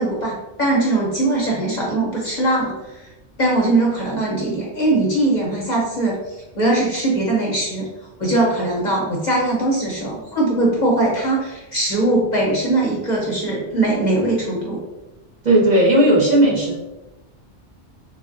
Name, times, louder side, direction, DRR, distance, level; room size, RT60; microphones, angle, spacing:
voice 1, 0.0-3.0 3.4-6.1 6.6-7.9 8.2-14.8, right 2 dB, 50° left, -4 dB, 0.6 m, -20 dB
voice 2, 15.4-16.8, right 1 dB, 45° right, -6 dB, 0.7 m, -15 dB
3.9 x 2.1 x 2.5 m, 1.0 s
omnidirectional pair, 1.2 m